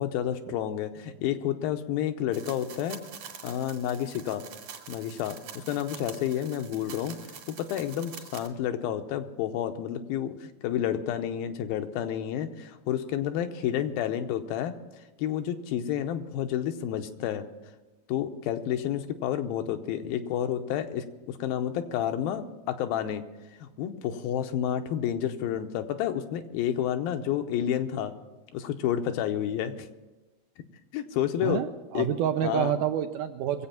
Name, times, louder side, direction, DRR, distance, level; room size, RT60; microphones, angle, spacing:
voice 1, 0.0-3.0 3.4-4.4 4.9-7.2 7.6-14.8 15.2-17.4 18.1-23.2 23.6-28.1 28.5-29.9 30.9-31.6 31.9-32.1 32.4-32.8, left 10 dB, 85° left, 7 dB, 2.7 m, -30 dB
sound 1, 2.3-8.5, right 7 dB, 60° right, 2.9 m, -45 dB
voice 2, 31.4-33.7, right 10 dB, 80° right, 7 dB, 1.9 m, -28 dB
22.5 x 8.2 x 5.8 m, 1.1 s
omnidirectional pair, 4.1 m